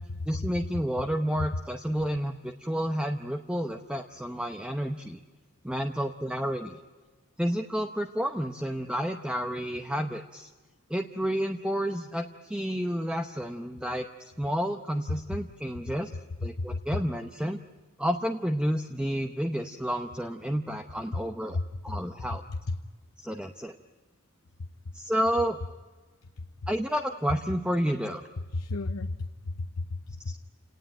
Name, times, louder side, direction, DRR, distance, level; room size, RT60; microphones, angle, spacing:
voice 1, 0.3-5.2 5.6-6.8 7.4-10.5 10.9-16.1 16.4-17.6 18.0-21.6 21.8-22.4 23.2-23.8 24.9-25.6 26.7-28.2, equal, 5° right, 5 dB, 0.8 m, -30 dB
voice 2, 22.2-22.8 26.4-26.5 28.5-30.3, left 2 dB, 85° left, 8 dB, 0.8 m, -33 dB
29.5 x 18.5 x 9.0 m, 1.3 s
head